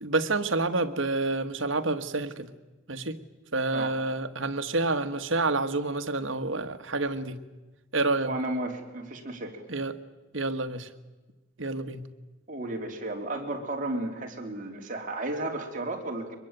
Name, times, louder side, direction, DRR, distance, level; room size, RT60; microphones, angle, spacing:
voice 1, 0.0-2.5 2.9-3.2 3.5-7.4 7.9-8.3 9.7-9.9 10.3-10.9 11.6-12.0, right 3 dB, 75° right, 8 dB, 1.6 m, -28 dB
voice 2, 8.2-9.6 12.5-16.4, right 2 dB, 45° right, 2 dB, 3.7 m, -33 dB
24.0 x 21.5 x 9.1 m, 1.2 s
head